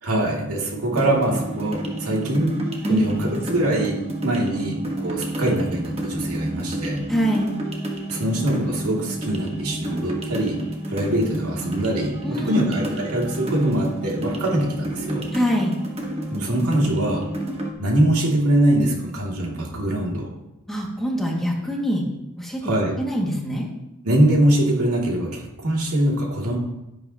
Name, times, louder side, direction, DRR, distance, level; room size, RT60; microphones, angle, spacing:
voice 1, 0.0-2.5 2.8-7.0 8.1-10.6 10.9-15.2 16.3-17.2 17.8-20.3 22.6-22.9 24.0-26.6, right 1 dB, 80° right, -2 dB, 2.9 m, -23 dB
sound 1, 0.9-17.7, right 1 dB, 25° right, 1.5 m, -30 dB
voice 2, 7.1-7.5 12.2-12.7 15.3-15.8 20.7-22.0 22.4-22.6 23.0-23.7, equal, ahead, -3 dB, 2.3 m, -24 dB
11.0 x 10.5 x 3.0 m, 0.94 s
head